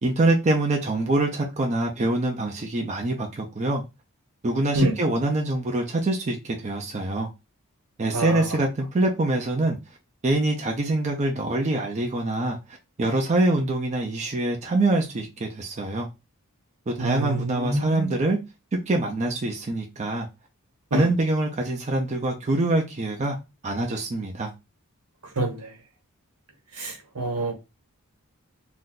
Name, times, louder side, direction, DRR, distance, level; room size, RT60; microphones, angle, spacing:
voice 1, 0.0-3.8 4.4-7.3 8.0-9.8 10.2-12.6 13.0-16.1 16.9-18.4 18.7-20.3 20.9-23.4 23.6-24.5, right 2 dB, 30° right, 0.5 m, -25 dB
voice 2, 8.1-8.5 17.0-18.2 20.9-21.1 25.4-25.7 26.7-27.5, right 1 dB, 80° right, 1.1 m, -26 dB
2.6 x 2.2 x 3.7 m
head